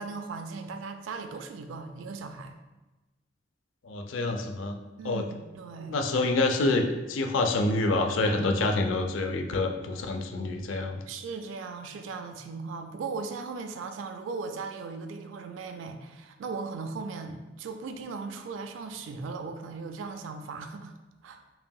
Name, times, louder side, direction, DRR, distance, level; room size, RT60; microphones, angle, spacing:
voice 1, 0.0-2.5 5.0-6.4 11.1-20.9 21.2-21.4, right 4 dB, 80° right, 7 dB, 0.3 m, -38 dB
voice 2, 3.8-4.8 5.0-5.2 5.9-11.0, left 2 dB, 85° left, 5 dB, 0.4 m, -27 dB
5.5 x 2.7 x 2.2 m, 1.1 s
head